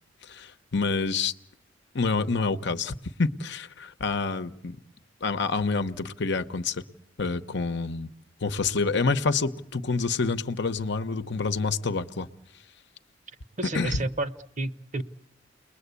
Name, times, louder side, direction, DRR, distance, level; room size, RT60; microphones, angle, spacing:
voice 1, 0.3-1.3 1.9-4.8 5.2-6.8 7.2-8.1 8.4-12.3 13.7-14.0, left 4 dB, 65° left, 10 dB, 0.9 m, -27 dB
voice 2, 13.6-15.0, right 2 dB, 40° right, 12 dB, 1.0 m, -31 dB
30.0 x 21.0 x 8.3 m, 0.78 s
head